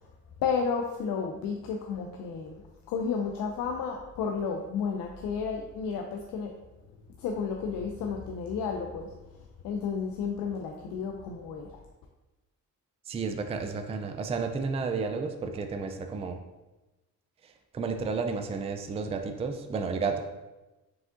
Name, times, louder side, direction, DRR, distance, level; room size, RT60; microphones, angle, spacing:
voice 1, 0.4-6.5 7.2-9.1 9.6-11.8, left 5 dB, 85° left, 2 dB, 0.5 m, -32 dB
voice 2, 13.1-16.4 17.4-20.2, right 4 dB, 20° right, 5 dB, 0.3 m, -32 dB
4.8 x 3.5 x 2.5 m, 1.1 s
cardioid pair, 95°, 33 cm